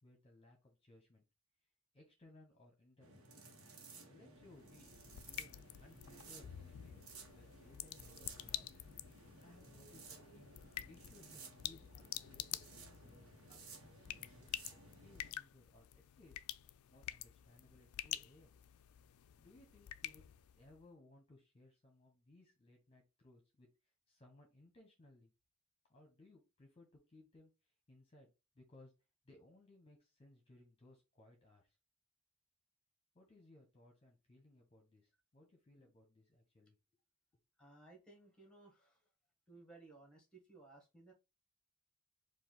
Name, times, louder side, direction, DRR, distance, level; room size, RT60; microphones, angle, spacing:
voice 1, 0.0-1.2 1.9-3.3 4.0-5.5 5.8-7.0 7.3-8.8 9.4-10.6 10.9-13.6 14.0-14.5 14.9-16.4 16.8-18.6 19.1-20.3 20.6-25.3 25.9-28.9 29.2-31.8 33.1-36.7, left 2 dB, 25° left, 2 dB, 0.9 m, -64 dB
sound 1, 3.0-15.3, right 3 dB, 85° right, 1.2 m, -57 dB
sound 2, 4.4-20.8, left 13 dB, 85° left, 0.3 m, -49 dB
voice 2, 37.6-39.0 39.5-41.1, right 3 dB, 5° left, 3 dB, 1.3 m, -60 dB
4.6 x 2.5 x 3.8 m, 0.26 s
head